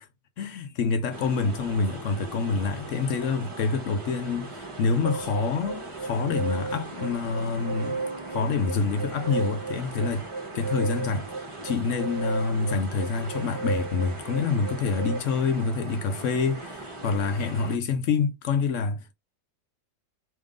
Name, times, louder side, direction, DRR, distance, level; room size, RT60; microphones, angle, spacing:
voice 1, 0.4-8.0 8.3-10.3 10.5-11.3 11.6-19.1, left 4 dB, 65° left, 0.7 m, -27 dB
sound 1, 1.1-17.8, right 2 dB, 20° right, 0.8 m, -40 dB
sound 2, 5.0-15.2, right 4 dB, 45° right, 1.1 m, -35 dB
3.6 x 3.0 x 4.9 m
omnidirectional pair, 1.9 m